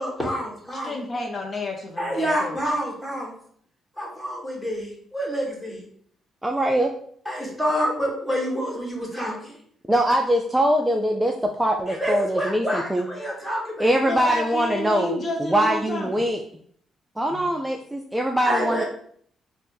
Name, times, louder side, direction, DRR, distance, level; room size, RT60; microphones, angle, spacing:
voice 1, 0.0-0.9 2.0-3.3 4.0-5.8 7.2-9.5 11.9-13.9 17.3-17.4 18.4-18.9, equal, 10° left, -2 dB, 1.3 m, -28 dB
voice 2, 0.7-2.6 14.1-16.1, left 2 dB, 40° left, 1 dB, 0.6 m, -30 dB
voice 3, 6.4-6.9 9.9-13.1 13.8-16.4 17.2-18.8, right 1 dB, 10° right, 1 dB, 0.3 m, -22 dB
3.3 x 2.1 x 4.2 m, 0.62 s
cardioid pair, 90°, 0 cm